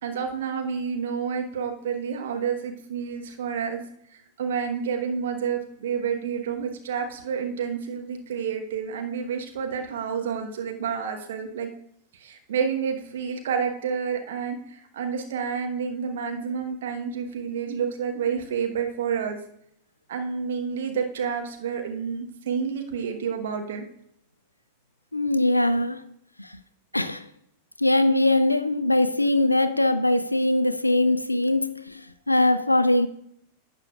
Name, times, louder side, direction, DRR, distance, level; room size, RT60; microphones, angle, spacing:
voice 1, 0.0-3.8 4.4-11.7 12.2-19.4 20.1-23.8, right 6 dB, 60° right, 1.1 m, -29 dB
voice 2, 25.1-26.0 26.4-26.5 26.9-27.3 27.8-33.1, left 1 dB, 85° left, 0.3 m, -22 dB
11.5 x 8.1 x 2.4 m
figure-of-eight pair, 90°, 0 cm